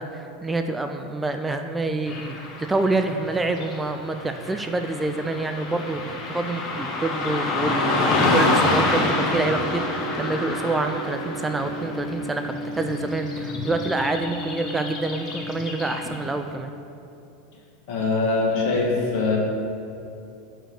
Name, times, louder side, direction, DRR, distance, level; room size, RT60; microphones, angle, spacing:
voice 1, 0.0-16.8, right 2 dB, 15° right, 6 dB, 0.3 m, -27 dB
Car passing by / Traffic noise roadway noise, 2.1-16.3, left 2 dB, 35° left, 1.1 m, -28 dB
sound 1, 7.8-16.1, right 1 dB, 85° left, 0.6 m, -34 dB
voice 2, 17.9-19.4, left 3 dB, 50° left, -2 dB, 1.6 m, -22 dB
5.8 x 4.6 x 6.5 m, 2.7 s
figure-of-eight pair, 80°, 0 cm